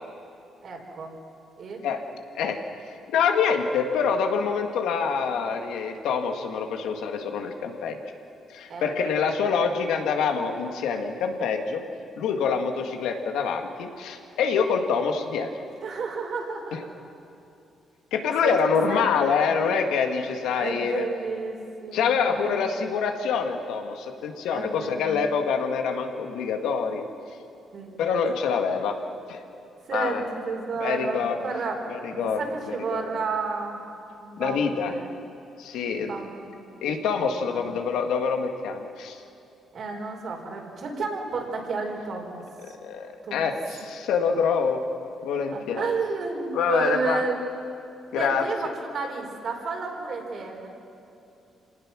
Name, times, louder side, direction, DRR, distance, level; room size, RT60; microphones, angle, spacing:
voice 1, 0.6-1.1 1.6-1.8 8.7-8.9 15.8-16.8 18.4-18.5 18.9-19.0 20.6-22.5 24.5-25.1 27.7-28.2 29.9-31.8 32.1-33.8 34.2-35.1 35.9-36.7 37.4-37.7 39.7-42.7 43.2-43.5 45.5-47.4 48.1-50.7, right 4 dB, 60° right, 0 dB, 4.9 m, -32 dB
voice 2, 2.9-8.0 8.5-11.8 12.2-15.5 16.7-16.8 18.1-21.0 21.9-27.1 28.0-29.0 29.3-29.4 29.9-30.2 30.8-31.4 31.9-32.4 32.7-33.0 34.4-34.9 35.6-36.1 36.8-39.2 42.8-44.8 45.2-45.9 46.5-47.2 48.1-48.4, left 6 dB, 85° left, 4 dB, 1.9 m, -26 dB
27.0 x 18.5 x 6.2 m, 2.8 s
cardioid pair, 90°, 0 cm